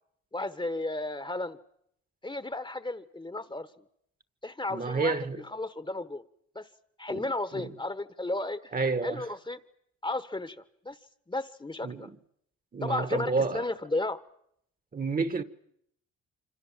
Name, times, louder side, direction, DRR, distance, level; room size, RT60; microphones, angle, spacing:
voice 1, 0.3-1.6 2.2-3.7 4.4-6.2 6.5-6.7 7.0-8.7 9.0-9.6 10.0-10.6 10.8-11.0 11.3-12.1 12.8-14.2, left 2 dB, 15° left, 1.3 m, -33 dB
voice 2, 4.7-5.4 7.1-7.8 8.7-9.2 11.8-12.2 12.7-13.6 14.9-15.4, right 4 dB, 30° right, 1.5 m, -30 dB
26.5 x 25.5 x 7.5 m
cardioid pair, 90°, 30 cm